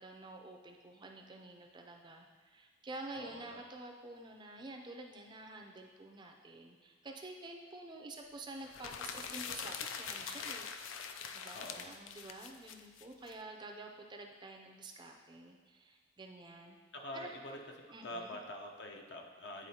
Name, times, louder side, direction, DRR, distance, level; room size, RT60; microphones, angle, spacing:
voice 1, 0.0-16.8 17.1-17.3 17.9-18.4, right 2 dB, 25° right, 2 dB, 0.4 m, -49 dB
voice 2, 3.2-3.6 11.5-11.9 16.9-17.6 18.0-19.7, left 1 dB, 60° left, 1 dB, 0.7 m, -45 dB
sound 1, 8.6-13.3, left 6 dB, 85° left, 0.4 m, -43 dB
9.5 x 4.2 x 2.8 m, 1.5 s
head